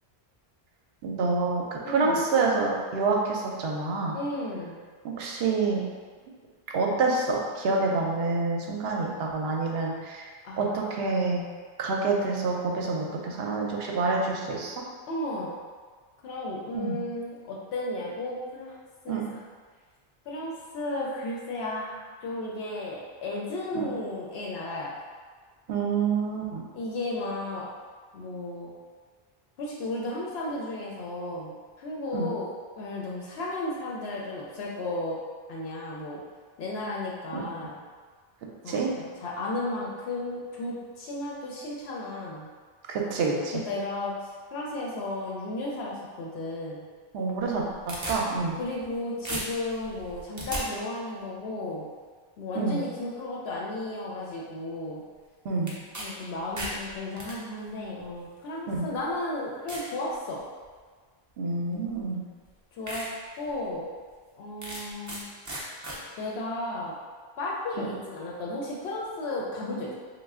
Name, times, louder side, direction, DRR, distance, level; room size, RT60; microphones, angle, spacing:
voice 1, 1.0-4.1 5.0-5.8 6.7-10.3 10.6-11.4 11.8-14.7 16.7-17.0 19.1-19.2 23.7-23.9 25.7-26.6 32.1-32.3 37.3-37.4 38.7-38.9 42.9-43.6 47.1-48.6 52.5-52.8 55.4-55.7 58.7-58.9 61.4-62.2 67.8-67.9, right 3 dB, 75° right, -1 dB, 0.8 m, -27 dB
voice 2, 1.8-2.2 4.1-4.8 10.4-11.3 15.1-15.5 16.2-18.8 19.0-19.4 20.3-25.0 26.7-27.7 28.1-28.7 29.6-32.5 32.7-35.2 35.5-36.2 36.6-37.8 38.6-42.5 43.5-46.8 48.6-51.9 52.4-55.0 56.0-60.4 62.7-63.1 63.4-63.9 64.4-65.3 66.2-67.0 67.4-69.9, left 2 dB, 80° left, -4 dB, 0.8 m, -34 dB
sound 1, 47.4-48.9 49.2-50.6 55.7-56.1 56.4-57.3 58.2-58.3 58.9-59.0 59.7-59.9 60.4-60.8 61.9-62.0 62.4-62.5 62.9-63.1 63.5-63.6 64.6-65.2 65.4-66.0, right 1 dB, 25° right, 0.4 m, -36 dB
3.1 x 2.1 x 3.5 m, 1.5 s
omnidirectional pair, 1.0 m